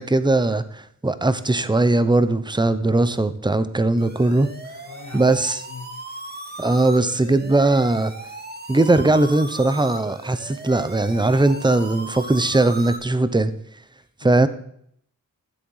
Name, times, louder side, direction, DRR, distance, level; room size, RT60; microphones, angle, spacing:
voice 1, 0.0-4.5 5.1-5.6 6.6-8.1 8.7-13.5 14.2-14.5, right 2 dB, 15° right, 13 dB, 0.9 m, -19 dB
sound 1, 4.0-13.0, right 2 dB, 30° right, 2.1 m, -37 dB
voice 2, 4.8-5.9 14.0-14.5, left 5 dB, 50° left, 5 dB, 2.2 m, -41 dB
13.5 x 7.8 x 5.7 m, 0.68 s
cardioid pair, 60°, 35 cm